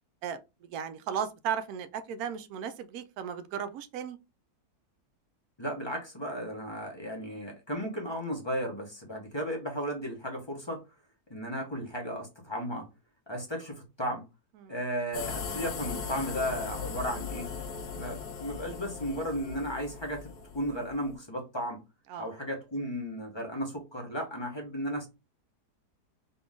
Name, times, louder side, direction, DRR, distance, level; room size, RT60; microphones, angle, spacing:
voice 1, 0.7-4.2 14.6-14.7 22.1-22.3, right 8 dB, 70° right, 1.0 m, -35 dB
voice 2, 5.6-10.8 11.3-12.9 13.3-14.2 14.7-17.5 17.9-21.8 22.2-25.1, equal, 20° left, 0.9 m, -35 dB
sound 1, 15.1-21.2, left 5 dB, 75° left, 1.6 m, -38 dB
4.0 x 2.8 x 3.6 m
omnidirectional pair, 1.8 m